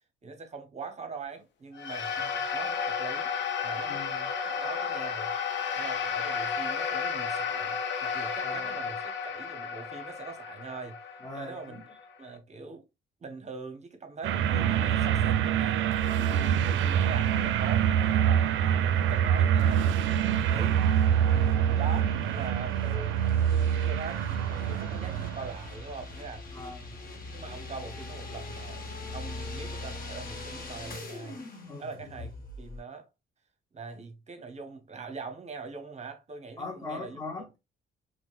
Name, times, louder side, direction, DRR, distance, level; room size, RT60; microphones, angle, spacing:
voice 1, 0.2-3.3 3.6-4.0 4.4-5.3 5.7-12.9 13.2-16.0 16.5-18.5 19.1-20.8 21.7-23.2 23.9-26.5 27.3-31.4 31.8-33.1 33.7-37.4, right 4 dB, 35° right, 0.7 m, -42 dB
sound 1, 1.7-12.3, left 6 dB, 65° left, 0.6 m, -33 dB
voice 2, 3.9-4.3 8.4-8.7 11.2-11.8 16.3-16.7 21.3-21.8 26.5-27.0 31.6-32.3 36.6-37.6, left 3 dB, 15° left, 0.6 m, -42 dB
sound 2, 14.2-25.7, right 9 dB, 75° right, 0.4 m, -25 dB
sound 3, 15.9-32.8, left 2 dB, 45° left, 0.9 m, -43 dB
4.5 x 2.1 x 2.3 m
cardioid pair, 90°, 20 cm